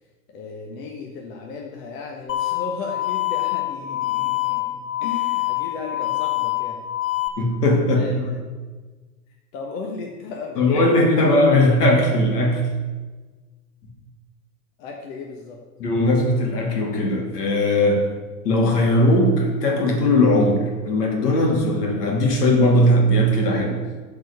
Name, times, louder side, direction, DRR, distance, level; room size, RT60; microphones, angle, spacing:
voice 1, 0.3-6.9 7.9-8.4 9.5-11.3 14.8-15.6, left 4 dB, 55° left, 0 dB, 1.5 m, -35 dB
sound 1, 2.3-7.3, left 16 dB, 30° left, 1.0 m, -25 dB
voice 2, 7.4-8.3 10.6-12.7 15.8-18.1 18.4-23.8, left 1 dB, 85° left, 1 dB, 2.5 m, -19 dB
9.3 x 4.7 x 6.9 m, 1.3 s
hypercardioid pair, 105°, 46 cm